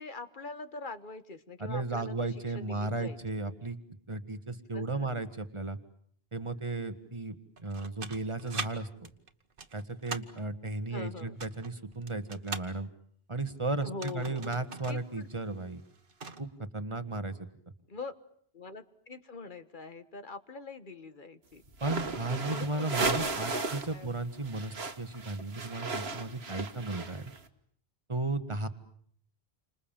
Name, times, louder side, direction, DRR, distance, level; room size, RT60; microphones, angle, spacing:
voice 1, 0.0-2.3 2.5-3.5 4.7-5.1 10.9-11.4 13.8-14.5 14.9-15.3 17.9-18.1 18.5-21.6 22.3-24.1, left 3 dB, 50° left, 11 dB, 1.6 m, -43 dB
voice 2, 1.6-3.8 4.1-5.8 6.3-7.3 7.6-9.1 9.7-12.9 13.3-15.8 16.4-17.4 21.8-27.2 28.1-28.7, right 2 dB, 30° right, 10 dB, 1.7 m, -35 dB
sound 1, 7.6-8.7 9.0-10.4 11.2-12.7 13.8-15.0 15.3-15.4 15.8-16.4, right 4 dB, 60° right, 1.6 m, -41 dB
sound 2, 21.7-24.0 24.2-27.4, right 3 dB, 80° right, 1.8 m, -35 dB
30.0 x 26.0 x 7.3 m, 0.62 s
omnidirectional pair, 1.1 m